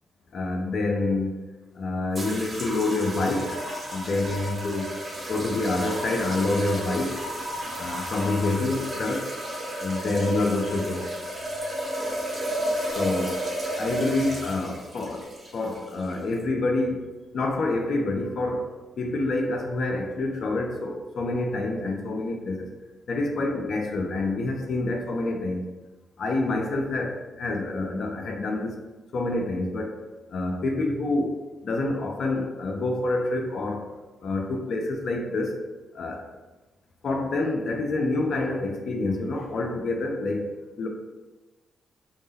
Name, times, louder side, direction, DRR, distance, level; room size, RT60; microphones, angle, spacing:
voice 1, 0.3-1.4 1.8-3.6 3.9-4.9 5.3-7.2 7.8-9.3 9.8-11.1 13.0-13.4 13.8-15.3 15.5-17.1 17.3-18.7 19.0-22.7 23.1-25.7 26.2-28.8 29.1-30.0 30.3-31.3 31.6-33.9 34.2-35.5 36.0-36.2 37.0-40.4 40.8-40.9, left 2 dB, 65° left, 3 dB, 0.4 m, -27 dB
sound 1, 2.1-16.4, equal, 40° right, 0.9 m, -32 dB
2.1 x 2.0 x 3.3 m, 1.2 s
hypercardioid pair, 40°, 0 cm